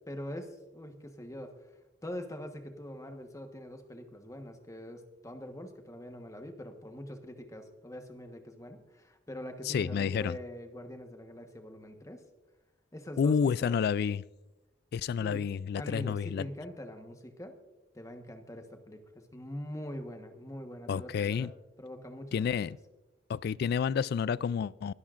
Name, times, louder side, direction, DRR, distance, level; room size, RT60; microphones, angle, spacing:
voice 1, 0.1-1.5 2.0-12.2 12.9-13.7 15.2-15.5 15.8-17.5 17.9-21.5 21.8-22.7, left 1 dB, 20° left, 1.2 m, -43 dB
voice 2, 9.6-10.4 13.2-14.2 14.9-16.5 20.9-21.5 22.3-22.8 23.3-24.9, left 6 dB, 60° left, 0.3 m, -29 dB
21.0 x 13.0 x 2.5 m
head